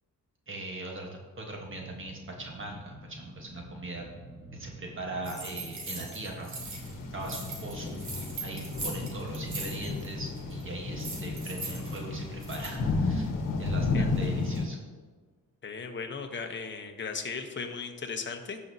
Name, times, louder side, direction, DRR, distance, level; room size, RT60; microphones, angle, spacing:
voice 1, 0.5-4.1 4.5-6.5 7.1-13.3 13.6-14.9, right 2 dB, 35° right, 1 dB, 1.3 m, -40 dB
sound 1, 1.6-14.7 15.0-15.1, equal, 10° right, 2.5 m, -44 dB
sound 2, 5.2-6.9 7.2-10.1 10.4-10.6 11.0-12.8, right 3 dB, 55° right, 2.2 m, -40 dB
sound 3, 6.6-14.7, left 3 dB, 70° left, 1.2 m, -33 dB
voice 2, 15.6-18.6, left 5 dB, 35° left, 4 dB, 1.0 m, -37 dB
15.5 x 5.3 x 2.8 m, 1.4 s
cardioid pair, 120°, 33 cm